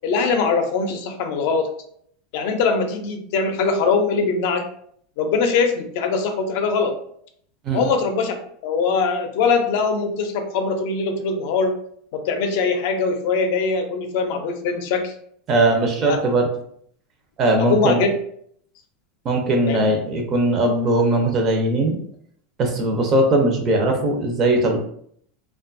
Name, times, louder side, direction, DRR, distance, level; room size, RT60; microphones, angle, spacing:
voice 1, 0.0-1.7 2.3-4.6 5.2-7.0 7.7-8.4 8.6-11.7 12.1-15.1 16.1-16.2 17.6-18.1 19.7-19.8, left 4 dB, 60° left, 6 dB, 0.5 m, -22 dB
voice 2, 15.5-16.5 17.4-18.0 19.2-22.0 22.6-24.8, right 1 dB, 35° right, 3 dB, 0.5 m, -19 dB
2.5 x 2.2 x 2.5 m, 0.65 s
supercardioid pair, 145°, 0 cm